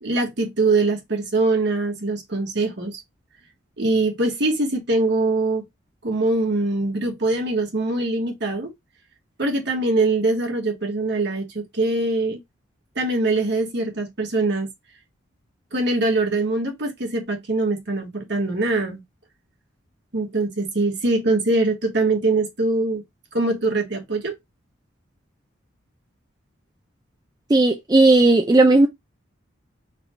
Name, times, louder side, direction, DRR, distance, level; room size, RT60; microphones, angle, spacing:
voice 1, 0.0-3.0 3.8-5.6 6.0-8.7 9.4-12.4 12.9-14.7 15.7-19.0 20.1-23.0 23.3-24.3, right 2 dB, 55° right, 1.2 m, -23 dB
voice 2, 27.5-28.9, right 2 dB, 20° right, 0.4 m, -15 dB
4.0 x 2.4 x 4.3 m
head